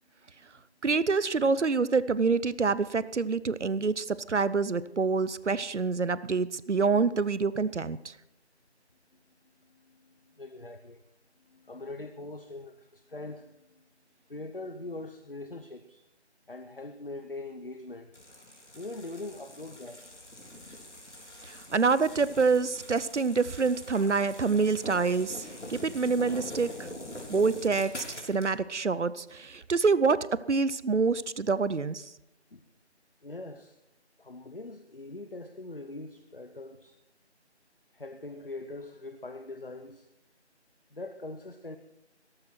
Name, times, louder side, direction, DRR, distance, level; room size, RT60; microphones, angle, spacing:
voice 1, 0.8-8.2 21.4-26.9 27.3-32.1, right 4 dB, 85° right, 18 dB, 0.8 m, -27 dB
voice 2, 9.1-11.0 11.4-13.8 14.3-16.0 16.5-18.1 18.7-20.2 32.5-32.6 33.2-33.8 34.2-37.0 37.9-40.1 40.9-41.8, left 2 dB, 50° left, 9 dB, 0.9 m, -42 dB
sound 1, 18.1-28.5, left 1 dB, 90° left, 3.8 m, -44 dB
16.5 x 14.5 x 4.5 m, 0.89 s
figure-of-eight pair, 180°, 34 cm